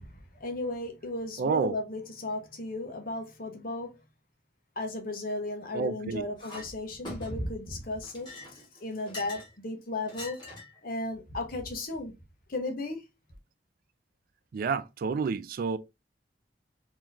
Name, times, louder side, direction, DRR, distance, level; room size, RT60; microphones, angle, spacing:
voice 1, 0.0-4.0 4.8-10.4 10.8-12.1 12.5-13.0, left 2 dB, 55° left, 1.0 m, -35 dB
voice 2, 1.4-1.8 5.7-6.2 14.5-15.8, right 5 dB, 55° right, 0.3 m, -29 dB
Chink clink, 6.4-6.7 7.0-7.6 8.0-9.5 10.1-10.8, left 2 dB, 25° left, 1.7 m, -43 dB
4.0 x 3.0 x 2.6 m
head